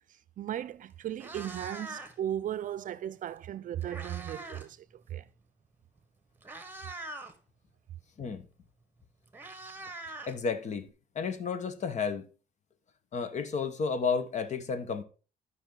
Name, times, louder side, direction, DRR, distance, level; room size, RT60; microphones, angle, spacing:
voice 1, 0.4-5.3, right 11 dB, 50° right, 0.6 m, -36 dB
Meow, 0.6-0.7 1.0-2.3 3.4-4.7 5.0-5.3 6.0-6.1 6.4-7.3 8.7-8.8 9.0-10.9, right 2 dB, 10° right, 1.4 m, -43 dB
voice 2, 10.3-10.9 11.1-12.2 13.1-15.0, left 5 dB, 45° left, 1.2 m, -32 dB
13.5 x 5.5 x 3.9 m
cardioid pair, 110°, 17 cm